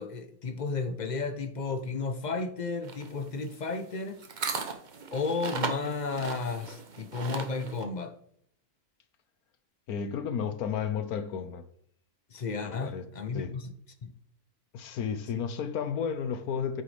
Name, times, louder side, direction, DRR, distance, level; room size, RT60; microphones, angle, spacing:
voice 1, 0.0-4.2 5.1-8.2 12.3-13.7 14.0-14.1, left 4 dB, 45° left, 0.6 m, -33 dB
sound 1, 2.8-7.8, right 4 dB, 40° right, 0.8 m, -37 dB
voice 2, 9.9-11.6 12.6-13.0 13.3-13.5 14.7-16.8, left 7 dB, 75° left, 1.2 m, -32 dB
9.1 x 6.6 x 3.3 m
omnidirectional pair, 1.6 m